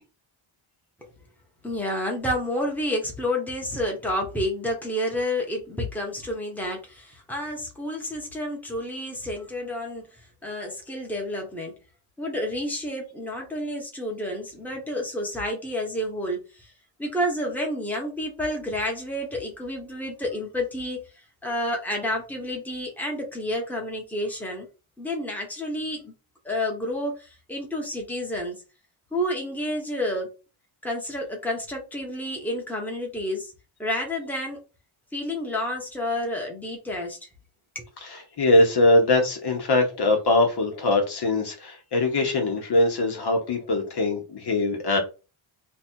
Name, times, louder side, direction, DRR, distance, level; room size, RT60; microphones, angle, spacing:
voice 1, 1.6-11.7 12.2-16.7 17.0-21.0 21.4-24.7 25.0-26.1 26.4-28.6 29.1-30.3 30.8-33.5 33.8-34.6 35.1-37.2 37.7-37.9, left 1 dB, 5° left, 1.2 m, -30 dB
voice 2, 38.0-45.0, left 2 dB, 55° left, 1.3 m, -22 dB
3.3 x 2.6 x 4.5 m
wide cardioid pair, 125°, 48 cm